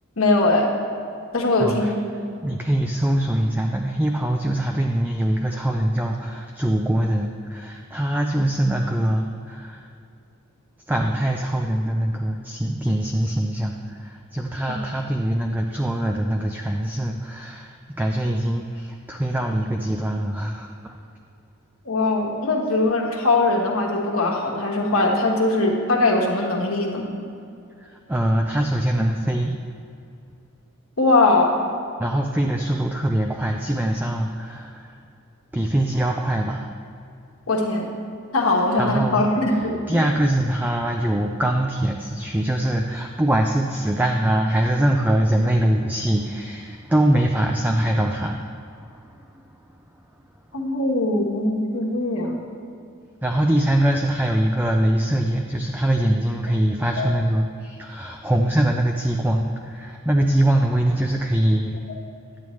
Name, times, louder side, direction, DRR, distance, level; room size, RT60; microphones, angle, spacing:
voice 1, 0.2-0.7 1.3-2.0 14.7-14.8 21.8-27.1 31.0-31.6 37.5-37.9 38.3-39.8 50.5-52.4 57.0-57.1, left 2 dB, 80° left, 0 dB, 1.3 m, -21 dB
voice 2, 1.6-1.9 2.4-9.9 10.9-21.0 27.8-29.6 32.0-35.0 35.5-36.7 38.8-49.6 49.9-50.0 53.2-61.8, right 1 dB, 10° right, 2 dB, 0.4 m, -23 dB
11.0 x 8.6 x 3.1 m, 2.5 s
head